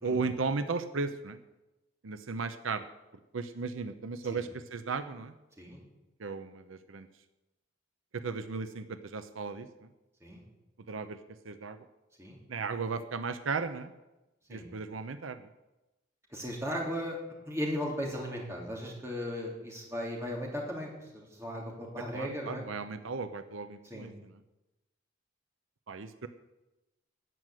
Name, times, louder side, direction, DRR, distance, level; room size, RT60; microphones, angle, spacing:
voice 1, 0.0-1.4 2.0-2.8 3.3-5.3 6.2-7.1 8.1-9.7 10.9-11.2 11.4-11.8 12.5-13.9 14.5-15.5 22.1-24.4 25.9-26.3, right 4 dB, 85° right, 11 dB, 0.7 m, -35 dB
voice 2, 16.3-17.2 17.4-22.6 23.8-24.1, equal, 15° right, -2 dB, 2.9 m, -37 dB
13.5 x 6.3 x 9.2 m, 1.0 s
head